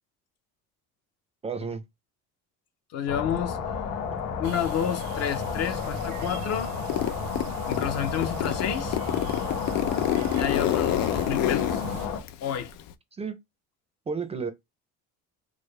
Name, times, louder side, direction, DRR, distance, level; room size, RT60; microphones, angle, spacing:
voice 1, 1.4-1.8 13.1-13.4 14.1-14.5, right 5 dB, 20° right, 0.5 m, -31 dB
voice 2, 2.9-3.6 4.4-6.7 7.6-9.0 10.4-11.8 12.4-12.7, left 9 dB, 50° left, 0.7 m, -30 dB
sound 1, 3.1-12.2, left 6 dB, 70° left, 1.6 m, -32 dB
sound 2, 4.4-12.1, right 9 dB, 90° right, 0.7 m, -41 dB
Zipper (clothing), 6.9-7.9 8.2-12.9, left 12 dB, 85° left, 0.6 m, -28 dB
4.7 x 2.1 x 3.2 m
cardioid pair, 155°, 32 cm